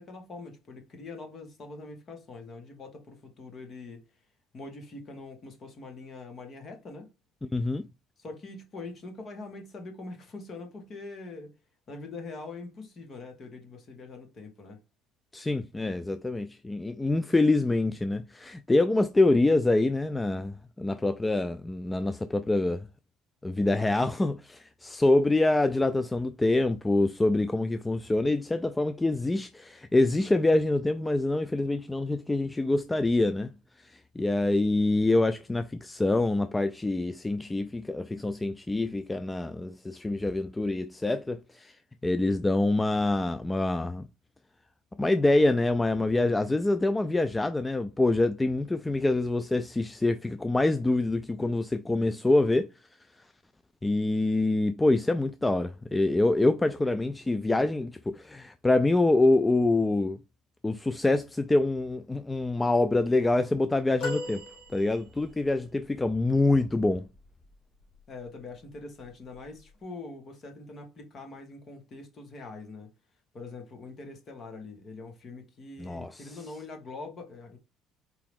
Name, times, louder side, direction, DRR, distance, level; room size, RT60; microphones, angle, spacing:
voice 1, 0.0-4.0 4.5-7.1 8.2-11.5 11.9-14.8 68.1-72.9 73.3-77.6, left 3 dB, 40° left, 1.7 m, -43 dB
voice 2, 7.5-7.9 15.3-22.9 23.4-33.5 33.8-41.8 42.0-44.1 45.0-52.7 53.8-60.2 60.6-64.4 64.7-67.0 75.8-76.4, left 2 dB, 15° left, 0.3 m, -25 dB
sound 1, 64.0-65.4 67.8-68.0 69.3-69.4, left 2 dB, 75° left, 2.9 m, -37 dB
4.6 x 2.9 x 3.5 m
cardioid pair, 115°, 0 cm